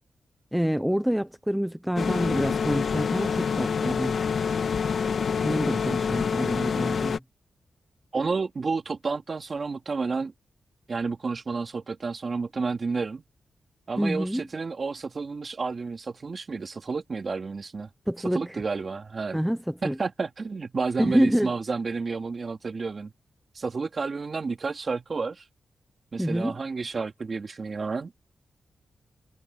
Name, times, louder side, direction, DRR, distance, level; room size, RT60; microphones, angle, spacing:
voice 1, 0.5-4.2 5.4-7.2 13.9-14.4 18.1-18.6 19.3-20.0 21.0-21.5 26.2-26.6, equal, 5° right, 0.9 m, -27 dB
sound 1, 2.0-7.2, left 6 dB, 65° left, 1.8 m, -27 dB
voice 2, 8.1-10.3 10.9-13.2 13.9-17.9 18.3-19.4 19.8-23.1 23.5-25.4 26.1-28.1, right 4 dB, 45° right, 2.6 m, -30 dB
wide cardioid pair, 115°, 0 cm